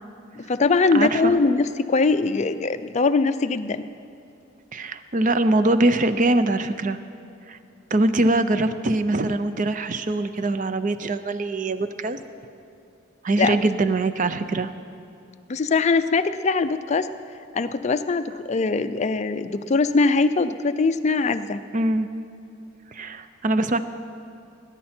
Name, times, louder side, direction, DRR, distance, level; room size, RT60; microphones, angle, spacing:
voice 1, 0.4-3.9 13.4-13.6 15.5-17.1 17.5-21.6, left 4 dB, 35° left, 10 dB, 0.4 m, -22 dB
voice 2, 0.9-1.3 4.7-7.0 7.5-7.6 7.9-12.2 13.2-14.7 21.7-22.1 22.9-23.8, right 2 dB, 40° right, 11 dB, 0.5 m, -22 dB
19.5 x 10.5 x 4.4 m, 2.7 s
head